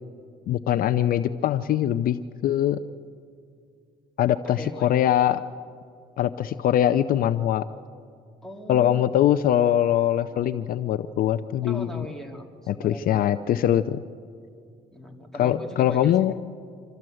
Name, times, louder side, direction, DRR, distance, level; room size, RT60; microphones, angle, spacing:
voice 1, 0.5-2.8 4.2-5.4 6.2-7.7 8.7-12.1 12.7-14.0 15.4-16.3, left 11 dB, 60° left, 12 dB, 0.5 m, -22 dB
voice 2, 4.4-4.9 8.4-9.0 11.6-13.3 14.9-16.3, left 1 dB, 5° left, 1 dB, 2.4 m, -40 dB
25.5 x 13.0 x 7.8 m, 2.4 s
cardioid pair, 110°, 17 cm